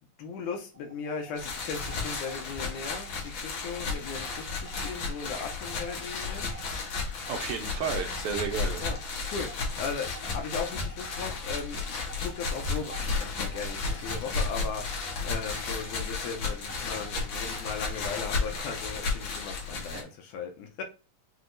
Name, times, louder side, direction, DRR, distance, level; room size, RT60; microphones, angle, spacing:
voice 1, 0.2-6.5 8.8-20.8, left 5 dB, 75° left, 2.0 m, -38 dB
sound 1, 0.7-20.1, right 8 dB, 5° left, 1.1 m, -52 dB
sound 2, 1.4-20.0, left 4 dB, 60° left, 2.1 m, -33 dB
voice 2, 7.1-8.8 19.7-20.1, right 6 dB, 80° right, 1.8 m, -33 dB
6.0 x 2.7 x 2.5 m
omnidirectional pair, 3.9 m